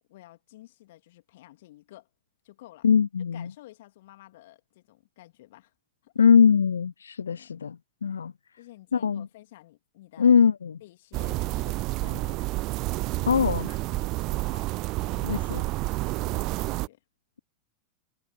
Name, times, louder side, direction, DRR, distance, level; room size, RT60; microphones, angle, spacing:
voice 1, 0.1-2.1 2.4-2.9 3.3-5.7 6.0-6.1 7.3-7.7 8.1-8.2 8.6-10.3 10.8-12.4 13.1-14.7 15.0-17.0, left 16 dB, 55° left, 2.8 m, -51 dB
voice 2, 2.8-3.5 6.2-8.3 8.9-9.3 10.2-10.7 13.3-13.7 15.2-15.6, left 6 dB, 70° left, 0.4 m, -21 dB
sound 1, 11.1-16.9, right 21 dB, 40° right, 0.5 m, -29 dB
figure-of-eight pair, 90°, 0 cm